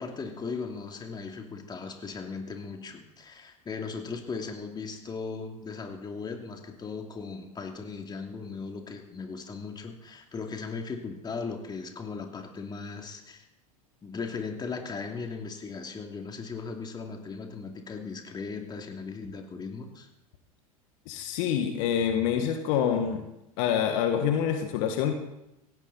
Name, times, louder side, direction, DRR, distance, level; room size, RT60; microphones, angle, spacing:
voice 1, 0.0-13.4 14.0-20.1 22.4-22.5, left 4 dB, 20° left, 3 dB, 2.8 m, -38 dB
voice 2, 21.1-23.3 23.6-25.1, left 8 dB, 60° left, 5 dB, 2.0 m, -26 dB
17.0 x 17.0 x 4.2 m, 0.87 s
hypercardioid pair, 85°, 19 cm